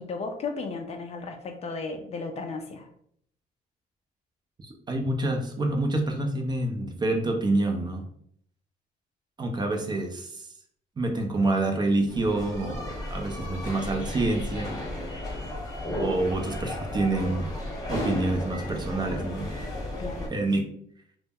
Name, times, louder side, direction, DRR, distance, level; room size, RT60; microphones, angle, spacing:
voice 1, 0.0-2.9 20.0-20.3, left 4 dB, 40° left, 5 dB, 0.4 m, -35 dB
voice 2, 4.6-8.1 9.4-10.5 11.0-14.8 15.3-15.5 16.0-17.5 17.9-19.5 20.3-20.7, right 2 dB, 25° right, 3 dB, 0.4 m, -27 dB
sound 1, 12.1-20.3, left 1 dB, 25° left, 0.9 m, -34 dB
2.1 x 2.0 x 3.4 m, 0.66 s
cardioid pair, 110°, 17 cm